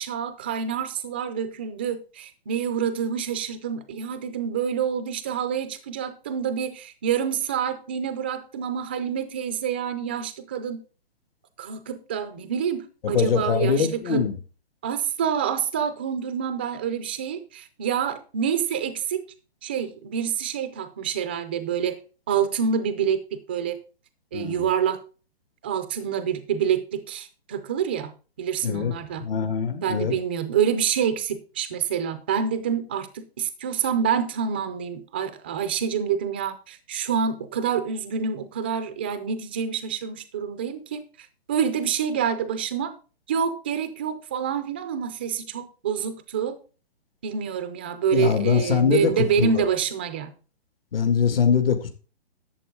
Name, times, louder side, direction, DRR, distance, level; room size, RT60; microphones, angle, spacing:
voice 1, 0.0-10.8 11.6-14.2 14.8-19.2 19.6-22.0 22.3-23.8 24.3-25.0 25.6-28.1 28.4-29.3 29.8-42.9 43.3-46.6 47.2-50.3, right 7 dB, 10° right, 11 dB, 0.4 m, -27 dB
voice 2, 13.0-14.3 24.3-24.6 28.6-28.9 29.2-30.1 48.1-49.5 50.9-51.9, left 6 dB, 65° left, 7 dB, 2.1 m, -22 dB
11.5 x 7.9 x 3.7 m, 0.35 s
hypercardioid pair, 155°, 31 cm